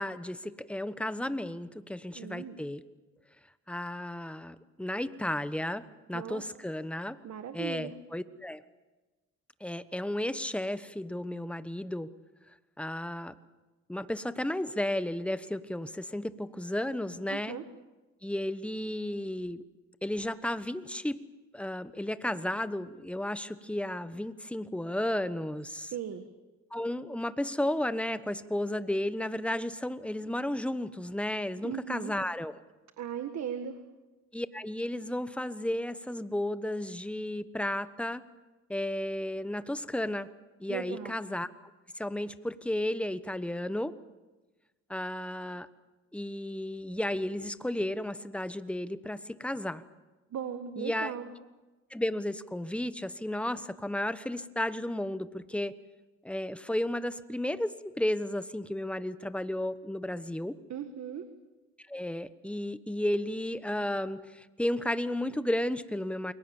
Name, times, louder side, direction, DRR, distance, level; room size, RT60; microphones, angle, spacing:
voice 1, 0.0-2.8 3.7-7.2 7.5-8.6 9.6-12.1 12.8-13.3 13.9-17.6 18.2-19.6 20.0-21.2 21.5-25.9 26.7-32.6 34.3-38.2 38.7-40.3 40.6-41.7 42.0-43.9 44.9-45.7 46.1-49.8 50.8-51.1 51.9-55.7 56.2-60.6 61.9-66.3, left 1 dB, 5° left, 13 dB, 1.2 m, -33 dB
voice 2, 2.2-2.6 6.1-6.4 7.2-7.9 17.3-17.6 25.9-26.2 31.6-32.1 33.0-33.7 40.7-41.1 50.3-51.3 60.7-61.2, right 8 dB, 65° right, 8 dB, 1.7 m, -37 dB
29.5 x 22.0 x 7.3 m, 1.2 s
cardioid pair, 90°, 30 cm